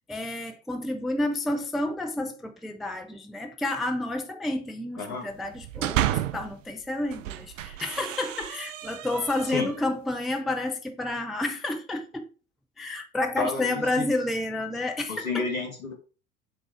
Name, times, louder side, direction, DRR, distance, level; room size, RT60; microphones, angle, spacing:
voice 1, 0.0-12.3 12.8-15.4, left 2 dB, ahead, 0.3 m, -30 dB
sound 1, 5.4-6.5 7.0-9.9, right 12 dB, 65° right, 0.5 m, -31 dB
voice 2, 13.4-14.1 15.1-15.9, left 4 dB, 80° left, 1.9 m, -31 dB
7.2 x 3.7 x 4.5 m
figure-of-eight pair, 80°, 42 cm